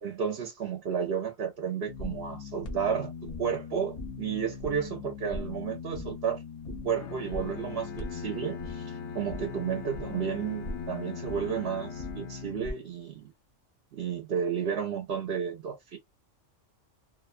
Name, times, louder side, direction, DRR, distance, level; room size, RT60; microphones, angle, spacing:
voice 1, 0.0-6.4 6.8-13.3 13.9-16.0, right 7 dB, 55° right, 0.8 m, -32 dB
sound 1, 1.8-12.7, left 4 dB, 40° left, 0.7 m, -40 dB
Bowed string instrument, 7.0-12.9, left 5 dB, 70° left, 0.8 m, -42 dB
2.6 x 2.1 x 2.4 m
omnidirectional pair, 1.3 m